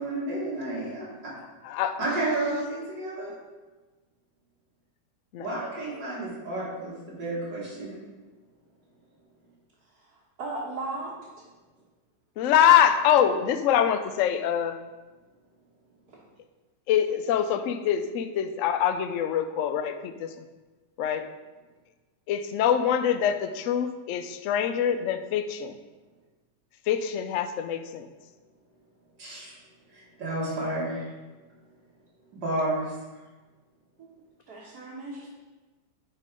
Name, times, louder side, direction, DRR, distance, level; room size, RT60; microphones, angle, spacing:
voice 1, 0.0-1.3 2.0-3.4 5.4-7.9 29.2-29.5 29.9-31.1 32.4-32.9, right 1 dB, 85° right, -8 dB, 2.7 m, -31 dB
voice 2, 1.6-2.0 5.3-5.5 12.4-14.8 16.9-20.3 21.0-21.3 22.3-25.7 26.9-28.1, left 9 dB, 75° left, 9 dB, 0.7 m, -24 dB
voice 3, 10.4-11.1 34.0-34.1 34.5-35.3, right 2 dB, 60° right, -6 dB, 1.8 m, -36 dB
9.8 x 3.6 x 5.2 m, 1.2 s
omnidirectional pair, 1.9 m